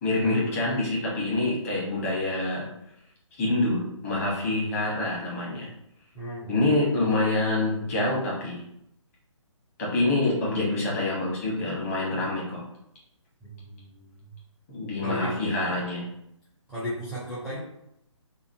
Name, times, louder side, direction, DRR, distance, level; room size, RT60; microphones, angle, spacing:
voice 1, 0.0-2.7 3.4-5.7 6.5-8.6 9.8-12.6 14.7-16.0, left 2 dB, 30° left, -5 dB, 1.1 m, -26 dB
voice 2, 6.1-6.5 13.4-14.3 15.0-15.3 16.7-17.6, equal, ahead, -11 dB, 0.5 m, -35 dB
2.9 x 2.4 x 2.7 m, 0.78 s
hypercardioid pair, 150°, 17 cm